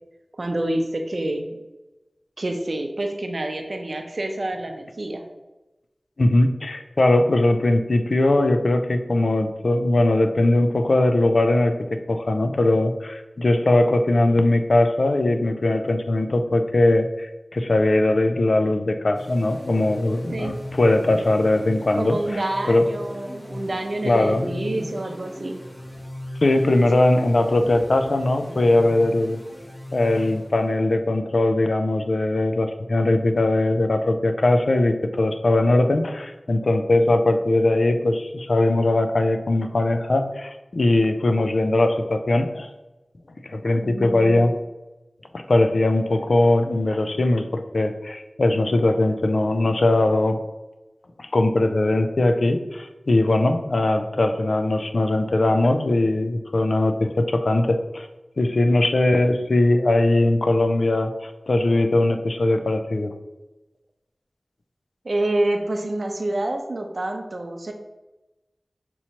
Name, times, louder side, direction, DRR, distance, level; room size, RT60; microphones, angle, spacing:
voice 1, 0.3-1.5 2.4-5.2 20.3-20.6 21.9-25.6 43.8-44.5 65.0-67.7, right 1 dB, 70° right, 4 dB, 0.6 m, -27 dB
voice 2, 6.2-22.2 22.7-22.9 24.0-24.4 26.4-29.4 29.9-42.7 43.4-44.6 45.3-50.4 51.2-58.1 58.4-63.1, left 2 dB, 80° left, 7 dB, 0.4 m, -20 dB
sound 1, 19.1-30.9, equal, 45° left, 1.4 m, -37 dB
5.5 x 3.0 x 2.8 m, 1.0 s
wide cardioid pair, 40°, 0 cm